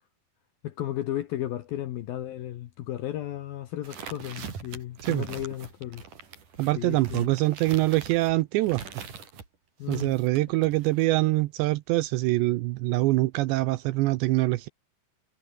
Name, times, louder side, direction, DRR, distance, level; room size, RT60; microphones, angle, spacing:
voice 1, 0.6-6.0 6.8-7.3 9.8-10.1, left 13 dB, 70° left, 2.2 m, -34 dB
sound 1, 3.8-9.5 9.9-11.1, right 6 dB, 45° right, 5.1 m, -42 dB
voice 2, 6.6-8.8 9.9-14.7, right 19 dB, 80° right, 2.6 m, -24 dB
omnidirectional pair, 5.6 m